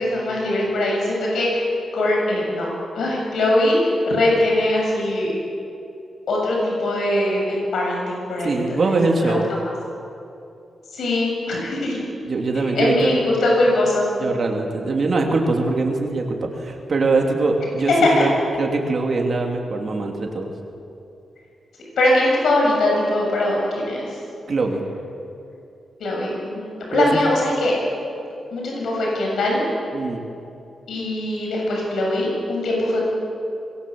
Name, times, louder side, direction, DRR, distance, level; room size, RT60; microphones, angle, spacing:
voice 1, 0.0-1.7 1.9-2.7 2.9-3.8 4.0-5.3 6.3-9.4 10.9-12.0 12.8-14.1 17.9-18.2 22.0-24.2 26.0-27.7 28.5-29.6 30.9-33.0, left 1 dB, 85° left, -2 dB, 7.1 m, -21 dB
voice 2, 8.4-9.4 12.3-13.1 14.2-18.3 18.6-20.5 24.5-24.8 26.9-27.1 29.9-30.3, right 3 dB, 45° right, 1 dB, 3.0 m, -22 dB
26.0 x 21.5 x 7.8 m, 2.6 s
wide cardioid pair, 150°, 0 cm